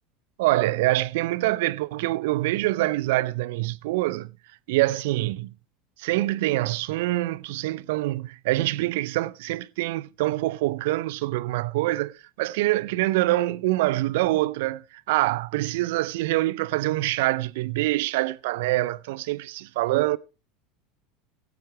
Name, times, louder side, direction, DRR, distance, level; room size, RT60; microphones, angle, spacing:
voice 1, 0.4-4.3 4.7-5.5 6.0-14.8 15.1-20.2, right 18 dB, 70° right, 0.5 m, -25 dB
16.5 x 7.9 x 4.5 m
hypercardioid pair, 80°, 0 cm